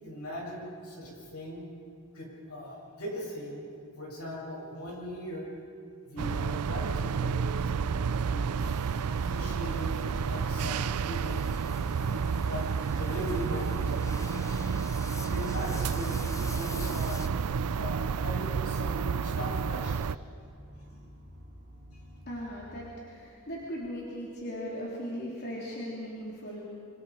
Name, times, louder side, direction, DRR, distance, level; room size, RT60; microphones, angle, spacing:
voice 1, 0.0-1.7 2.1-3.7 3.9-5.5 6.1-8.5 9.1-11.6 12.0-12.2 12.5-12.6 12.9-14.6 15.3-17.2 17.7-20.0, equal, 80° left, -3 dB, 7.6 m, -39 dB
sound 1, 6.2-22.9, right 1 dB, 35° right, 4.4 m, -51 dB
sound 2, 6.2-20.2, right 6 dB, 80° right, 0.5 m, -30 dB
sound 3, 8.6-17.3, left 3 dB, 15° left, 0.9 m, -48 dB
voice 2, 22.3-26.6, equal, 45° left, -5 dB, 3.3 m, -38 dB
26.5 x 25.5 x 5.0 m, 2.3 s
head